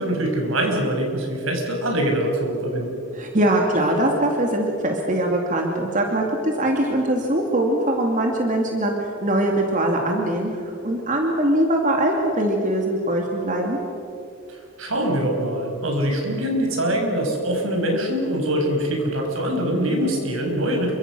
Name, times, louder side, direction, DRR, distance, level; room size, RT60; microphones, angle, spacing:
voice 1, 0.0-2.9 14.8-21.0, right 1 dB, 80° right, 2 dB, 5.9 m, -23 dB
voice 2, 3.1-8.9 9.2-13.8, right 1 dB, 40° right, 1 dB, 2.6 m, -22 dB
28.5 x 24.5 x 6.3 m, 2.5 s
head